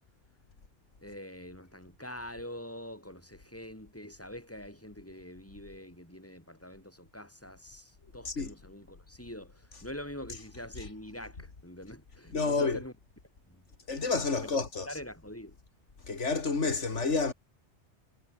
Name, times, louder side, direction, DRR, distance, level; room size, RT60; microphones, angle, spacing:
voice 1, 1.0-12.9 13.5-13.6 14.4-15.6, left 1 dB, 10° left, 5.7 m, -45 dB
voice 2, 12.3-12.8 13.9-14.9 16.1-17.3, left 4 dB, 90° left, 2.8 m, -29 dB
omnidirectional pair, 1.2 m